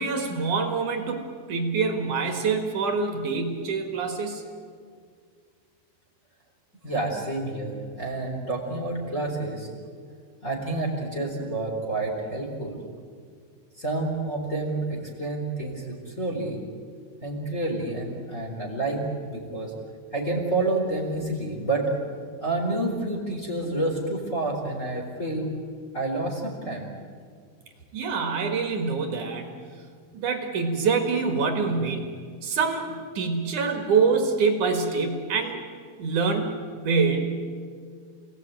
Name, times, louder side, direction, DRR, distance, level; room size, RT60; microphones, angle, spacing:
voice 1, 0.0-4.4 27.9-29.5 30.1-32.1 32.4-35.6 36.0-36.6 36.8-37.5, right 4 dB, 55° right, 6 dB, 2.3 m, -25 dB
voice 2, 6.8-9.7 10.4-12.8 13.8-16.6 17.2-19.7 20.1-21.9 22.4-25.5 25.9-26.9, right 2 dB, 15° left, 3 dB, 3.8 m, -29 dB
29.0 x 18.0 x 9.2 m, 2.1 s
omnidirectional pair, 5.8 m